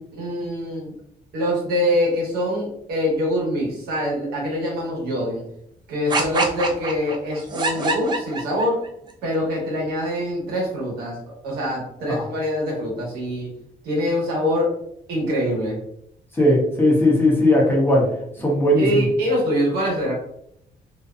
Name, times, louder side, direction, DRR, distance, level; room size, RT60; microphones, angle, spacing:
voice 1, 0.2-0.9 1.3-5.4 5.9-8.8 9.2-11.2 11.4-13.5 13.8-14.7 15.1-15.8 18.8-20.1, equal, 90° right, -2 dB, 1.1 m, -24 dB
sound 1, 6.1-8.9, right 3 dB, 30° right, 0.4 m, -25 dB
voice 2, 16.3-18.1 18.4-19.0, left 1 dB, 15° left, -3 dB, 0.7 m, -18 dB
2.6 x 2.1 x 2.4 m, 0.72 s
cardioid pair, 135°, 16 cm